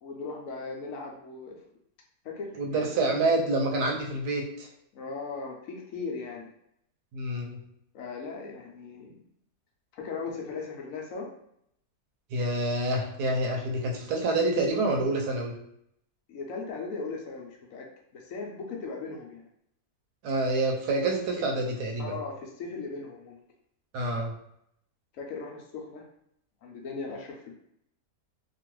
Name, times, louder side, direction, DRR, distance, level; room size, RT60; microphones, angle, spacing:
voice 1, 0.0-1.6 2.2-2.9 4.9-6.5 7.9-9.2 9.9-11.3 16.3-17.9 18.1-19.5 22.0-23.4 25.1-26.1 26.6-27.5, left 4 dB, 65° left, 0 dB, 0.9 m, -38 dB
voice 2, 2.5-4.7 7.1-7.6 12.3-15.6 20.2-22.2 23.9-24.4, right 2 dB, 85° right, 1 dB, 1.2 m, -27 dB
2.9 x 2.5 x 3.0 m, 0.73 s
omnidirectional pair, 1.7 m